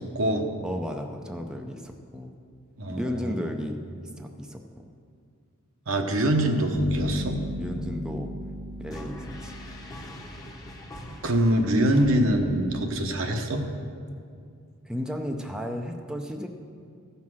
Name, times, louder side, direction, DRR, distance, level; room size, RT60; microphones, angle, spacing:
voice 1, 0.0-0.5 2.8-3.3 5.9-7.4 11.2-13.7, right 1 dB, 70° right, 4 dB, 1.0 m, -24 dB
voice 2, 0.6-2.3 2.9-3.8 4.2-4.6 7.2-8.3 8.8-9.5 14.8-16.5, equal, 5° right, 3 dB, 0.5 m, -34 dB
sound 1, 6.7-10.7, left 1 dB, 60° left, 1.3 m, -34 dB
sound 2, 8.9-13.2, left 1 dB, 15° left, 0.9 m, -42 dB
14.5 x 5.7 x 6.2 m, 2.3 s
head